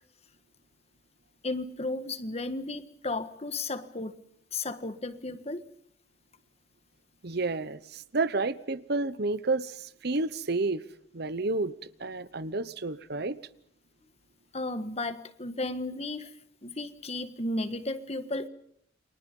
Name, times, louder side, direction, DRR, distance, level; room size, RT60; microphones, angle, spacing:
voice 1, 1.4-4.2 4.5-5.6 14.5-16.3 16.6-18.5, left 2 dB, 30° left, 1.5 m, -34 dB
voice 2, 7.2-10.8 11.1-13.4, right 3 dB, 55° right, 1.0 m, -30 dB
30.0 x 24.0 x 5.4 m
head